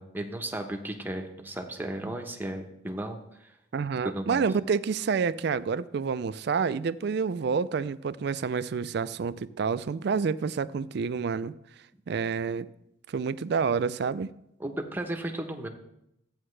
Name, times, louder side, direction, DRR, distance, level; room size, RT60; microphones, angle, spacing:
voice 1, 0.0-3.5 4.0-4.5 14.6-15.7, right 1 dB, 10° right, 0.8 m, -35 dB
voice 2, 3.7-11.5 12.1-12.7 13.1-14.3, right 5 dB, 55° right, 0.3 m, -28 dB
13.0 x 8.7 x 3.2 m
head